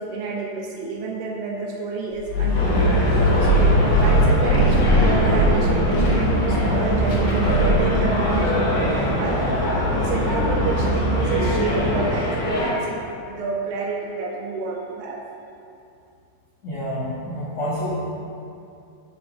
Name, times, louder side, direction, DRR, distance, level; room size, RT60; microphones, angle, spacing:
voice 1, 0.0-2.8 3.4-9.4 9.9-15.2, right 4 dB, 80° right, 0 dB, 2.8 m, -29 dB
sound 1, 2.3-8.0, equal, 65° left, 4.2 m, -20 dB
sound 2, 2.5-12.7, left 1 dB, 50° left, 2.4 m, -25 dB
sound 3, 2.5-12.0, right 1 dB, 60° right, 3.7 m, -24 dB
voice 2, 16.6-18.0, equal, 85° left, -11 dB, 1.4 m, -28 dB
9.4 x 8.3 x 2.6 m, 2.5 s
omnidirectional pair, 5.7 m